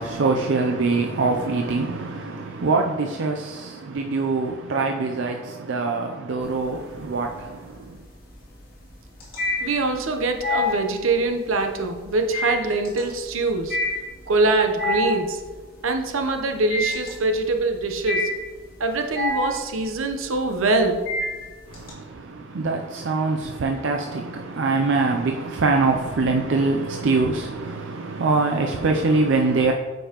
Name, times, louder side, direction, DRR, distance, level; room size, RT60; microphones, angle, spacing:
voice 1, 0.0-8.0 21.7-29.7, right 3 dB, 65° right, 0.5 m, -24 dB
sound 1, 6.4-7.0 7.4-21.9, left 2 dB, 45° left, 2.1 m, -28 dB
voice 2, 9.6-13.8 14.3-15.4 15.8-18.3 18.8-21.0, right 3 dB, 80° right, 0.8 m, -23 dB
8.7 x 5.3 x 2.9 m
head